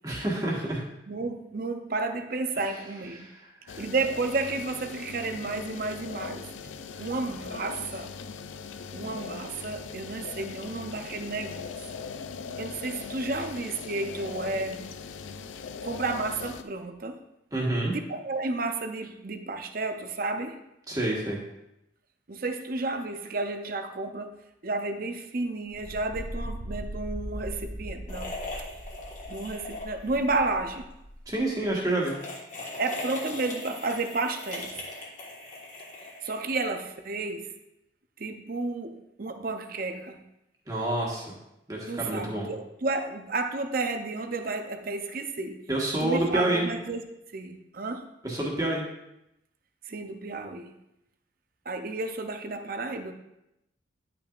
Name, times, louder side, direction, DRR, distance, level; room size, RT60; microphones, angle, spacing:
voice 1, 0.0-0.8 2.6-2.8 3.1-3.8 6.9-7.1 17.5-17.9 20.9-21.4 31.3-32.2 40.7-41.3 41.7-42.5 45.7-46.7 48.2-48.8, right 1 dB, 20° right, -4 dB, 1.5 m, -28 dB
voice 2, 1.1-3.3 3.8-6.5 7.0-8.1 8.9-11.8 12.6-14.9 15.8-17.2 18.1-20.6 22.3-24.3 24.6-28.4 29.3-30.8 32.8-34.8 36.2-37.5 38.2-40.2 41.9-45.7 46.0-47.0 47.3-48.1 49.9-50.8 51.7-53.1, right 3 dB, 50° right, 7 dB, 0.6 m, -32 dB
sound 1, 3.7-16.6, left 5 dB, 80° left, 0.4 m, -40 dB
sound 2, 25.7-31.7, equal, 80° right, 1.5 m, -39 dB
sound 3, 28.1-30.3 30.6-30.8 31.9-36.9, left 2 dB, 40° left, 1.5 m, -40 dB
10.5 x 5.9 x 2.5 m, 0.86 s
head